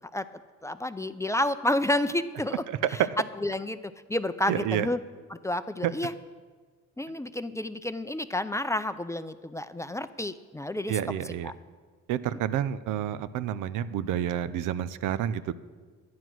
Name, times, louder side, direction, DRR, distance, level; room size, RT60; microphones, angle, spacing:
voice 1, 0.6-2.6 2.9-3.0 3.4-3.8 4.1-5.0 5.3-6.1 7.0-11.0 11.4-11.5, left 1 dB, 10° left, 12 dB, 0.5 m, -30 dB
voice 2, 4.5-4.9 5.8-5.9 10.9-11.5 12.1-15.5, right 10 dB, 85° right, 14 dB, 0.6 m, -29 dB
11.0 x 9.5 x 6.1 m, 1.5 s
cardioid pair, 90°, 30 cm